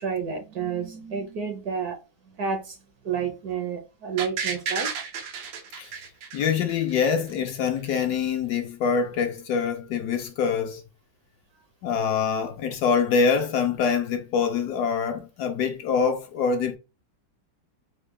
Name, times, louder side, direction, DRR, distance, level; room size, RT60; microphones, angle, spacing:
voice 1, 0.0-2.0 2.4-2.8 3.0-4.9, right 6 dB, 65° right, 1.1 m, -30 dB
sound 1, 4.2-7.1 7.5-7.6, right 6 dB, 85° right, 1.4 m, -32 dB
voice 2, 6.3-10.8 11.8-16.8, left 6 dB, 70° left, 1.0 m, -25 dB
4.5 x 2.2 x 3.1 m
omnidirectional pair, 2.0 m